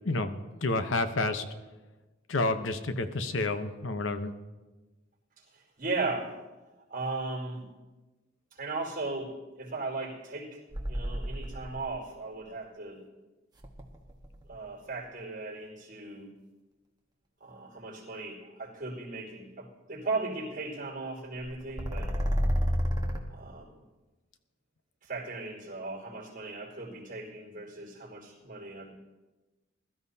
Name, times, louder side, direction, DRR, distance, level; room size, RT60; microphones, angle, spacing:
voice 1, 0.0-1.4 2.3-4.3, left 2 dB, 80° left, 9 dB, 0.9 m, -30 dB
voice 2, 5.5-6.3 6.9-7.6 8.5-10.6 10.9-13.0 14.5-16.3 17.4-22.1 23.3-23.7 25.0-28.9, right 3 dB, 45° right, -2 dB, 4.5 m, -37 dB
sound 1, 10.7-12.0 13.6-14.5 21.5-23.2, equal, 20° right, 1.4 m, -30 dB
21.5 x 13.0 x 2.8 m, 1.2 s
head